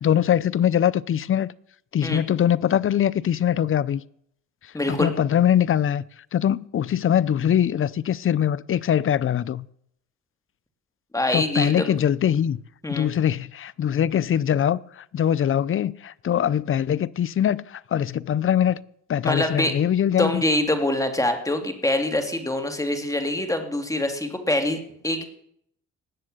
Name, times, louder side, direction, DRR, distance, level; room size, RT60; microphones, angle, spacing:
voice 1, 0.0-1.5 1.9-4.0 4.9-6.0 6.3-9.7 11.3-12.6 12.9-18.8 19.1-20.4, left 9 dB, 45° left, 0.6 m, -22 dB
voice 2, 4.7-5.1 11.1-11.9 12.8-13.1 19.2-19.7 20.2-25.2, left 1 dB, 10° left, 2.8 m, -24 dB
19.0 x 7.6 x 7.9 m
cardioid pair, 90°, 30 cm